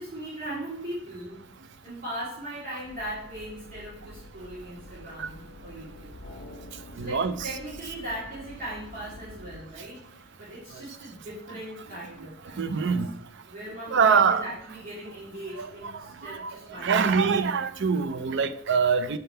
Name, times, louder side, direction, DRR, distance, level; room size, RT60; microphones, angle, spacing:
voice 1, 0.0-1.5 1.8-6.1 6.9-12.9 13.4-17.4, right 1 dB, 50° right, -8 dB, 2.2 m, -39 dB
sound 1, 2.8-9.6, left 1 dB, 70° left, 1.0 m, -47 dB
voice 2, 7.0-7.3 10.7-10.8 12.5-13.1 13.9-14.5 15.6-19.2, right 5 dB, 65° right, 13 dB, 0.5 m, -25 dB
6.7 x 3.5 x 5.5 m, 0.65 s
head